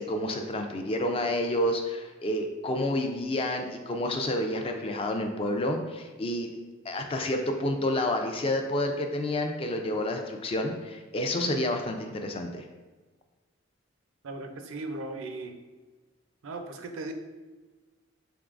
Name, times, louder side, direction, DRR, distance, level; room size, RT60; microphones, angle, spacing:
voice 1, 0.0-6.5 6.8-12.7, left 1 dB, 25° left, 4 dB, 0.3 m, -29 dB
voice 2, 14.2-15.5 16.4-17.1, right 2 dB, 80° right, 6 dB, 0.4 m, -37 dB
3.8 x 3.5 x 2.4 m, 1.3 s
head